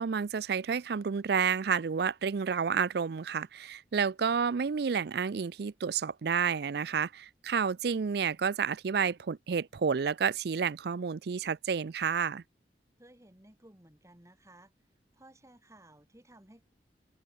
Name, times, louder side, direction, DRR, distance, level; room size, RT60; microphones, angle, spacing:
voice 1, 0.0-12.4, right 6 dB, 60° right, 0.4 m, -30 dB
voice 2, 13.0-14.7 15.1-16.7, right 1 dB, 15° right, 2.4 m, -57 dB
head